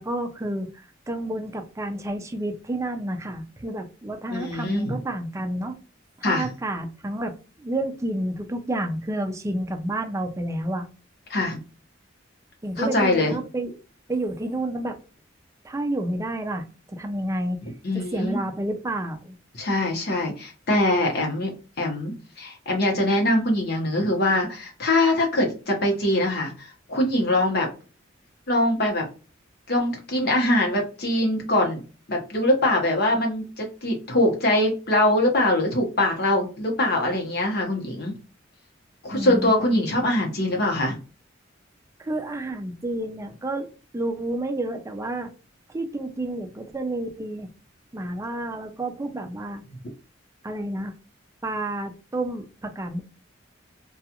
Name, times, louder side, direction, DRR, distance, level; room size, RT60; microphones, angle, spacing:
voice 1, 0.0-5.7 6.2-10.9 12.6-13.8 14.1-15.0 15.6-17.6 17.9-19.4 39.1-39.8 42.0-45.3 45.7-47.5 47.9-49.6 50.4-50.9 51.4-53.0, right 1 dB, 15° right, 5 dB, 0.4 m, -30 dB
voice 2, 4.3-5.0 6.2-6.5 11.3-11.6 12.8-13.3 17.6-18.4 19.5-27.7 28.5-29.0 29.7-31.8 32.1-38.2 39.0-41.0, left 1 dB, 55° left, 0 dB, 0.9 m, -23 dB
2.3 x 2.3 x 2.8 m, 0.35 s
head